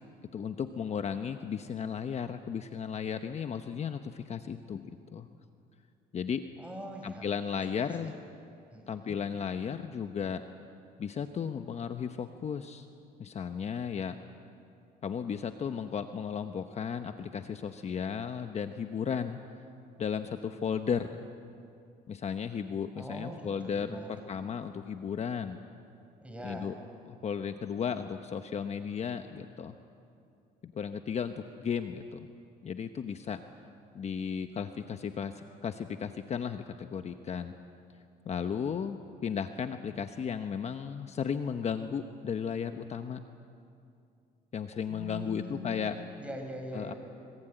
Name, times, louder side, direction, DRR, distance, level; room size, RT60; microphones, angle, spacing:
voice 1, 0.3-5.3 6.1-6.4 7.0-8.2 8.9-10.4 11.0-12.9 13.2-14.2 15.0-19.4 20.0-21.3 22.1-25.6 26.4-26.8 27.1-29.7 30.6-31.3 31.6-32.3 32.6-33.4 33.9-37.5 38.2-43.2 44.5-46.0 46.7-46.9, left 7 dB, 40° left, 8 dB, 1.0 m, -35 dB
voice 2, 6.6-7.2 7.8-8.1 8.7-9.2 23.0-24.1 26.2-26.7 44.9-45.9 46.2-47.0, equal, 5° right, 3 dB, 5.7 m, -42 dB
25.5 x 23.5 x 9.1 m, 2.5 s
cardioid pair, 110°, 17 cm